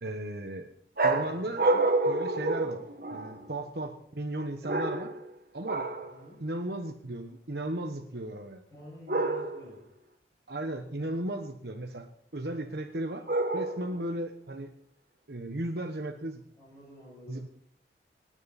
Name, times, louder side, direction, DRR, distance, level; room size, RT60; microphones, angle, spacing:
voice 1, 0.0-0.7 1.0-1.7 2.0-2.8 3.1-5.1 5.5-5.9 6.4-8.6 10.5-13.3 13.5-14.7 15.3-16.4 17.3-17.5, right 1 dB, 70° right, 4 dB, 1.2 m, -35 dB
sound 1, 1.0-3.5 4.6-5.3 5.7-6.1 9.1-9.7 13.3-14.0, right 2 dB, 55° right, 1.6 m, -28 dB
voice 2, 6.0-6.4 8.7-9.8 16.6-17.4, equal, 20° left, -7 dB, 7.6 m, -50 dB
27.0 x 10.5 x 4.3 m, 0.64 s
head